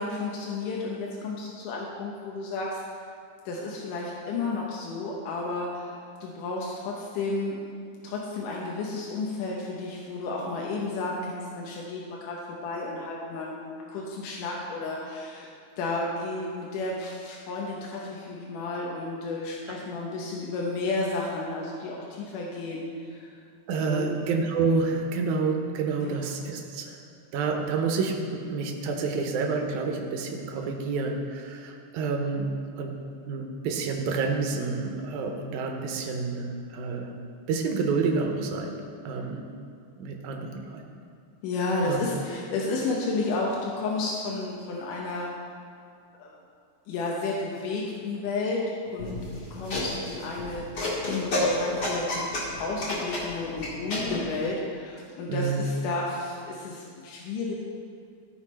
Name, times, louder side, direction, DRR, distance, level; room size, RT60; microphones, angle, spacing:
voice 1, 0.0-2.8 3.5-6.0 6.2-7.7 8.0-15.5 15.8-23.3 23.9-24.2 26.0-26.3 41.4-45.4 46.2-46.3 46.9-49.2 49.5-50.7 51.1-57.6, left 3 dB, 80° left, -3 dB, 2.5 m, -32 dB
voice 2, 23.7-27.0 27.3-33.0 33.3-36.5 36.7-37.1 37.5-38.8 39.1-39.5 40.0-40.8 41.9-42.0 55.3-55.6, right 4 dB, 75° right, 2 dB, 2.2 m, -28 dB
sound 1, 49.0-54.2, left 1 dB, 35° left, 2.0 m, -30 dB
15.0 x 5.3 x 4.2 m, 2.3 s
omnidirectional pair, 3.7 m